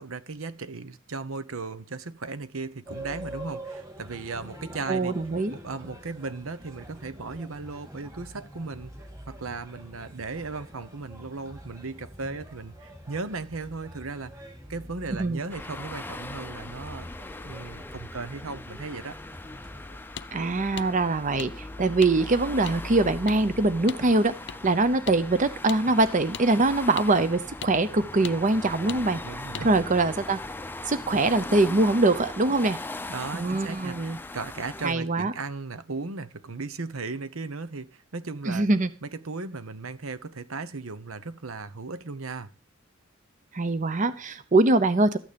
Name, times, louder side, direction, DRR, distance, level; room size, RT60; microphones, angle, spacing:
voice 1, 0.0-5.1 5.5-17.1 17.4-19.2 29.2-29.7 33.1-38.7 39.0-42.5, right 3 dB, 75° right, 1.0 m, -36 dB
sound 1, 2.9-20.0, right 1 dB, 15° right, 3.3 m, -45 dB
voice 2, 4.9-5.5 15.2-15.4 20.3-24.3 24.6-29.2 29.6-30.4 30.9-32.8 33.3-34.2 34.8-35.3 38.5-38.9 43.5-45.2, right 2 dB, 35° right, 0.7 m, -23 dB
sound 2, 15.5-34.9, left 2 dB, 10° left, 0.6 m, -39 dB
sound 3, 20.2-20.3 20.8-20.9 21.4-21.5 22.0-22.1 22.7-22.8 23.3-23.4 23.9-24.0 24.5-24.6 25.1-25.2 25.7-25.8 26.3-26.5 27.0-27.1 27.6-27.7 28.2-28.4 28.9-29.0 29.5-29.7, left 8 dB, 55° left, 0.6 m, -37 dB
13.5 x 9.2 x 5.2 m
head